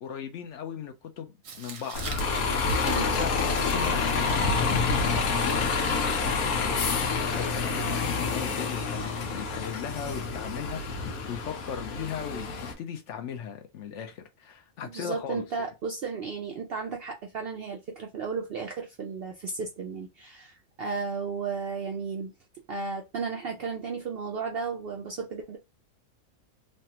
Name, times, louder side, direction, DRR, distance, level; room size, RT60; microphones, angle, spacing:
voice 1, 0.0-3.3 3.6-12.5 12.8-15.4, left 8 dB, 65° left, 0.8 m, -38 dB
Tearing, 1.4-8.1, right 6 dB, 85° right, 1.3 m, -46 dB
Bus, 1.9-12.7, left 4 dB, 80° left, 1.2 m, -28 dB
voice 2, 2.9-3.2 14.8-22.3 22.7-25.6, right 5 dB, 65° right, 0.6 m, -34 dB
3.3 x 2.2 x 2.8 m
omnidirectional pair, 1.5 m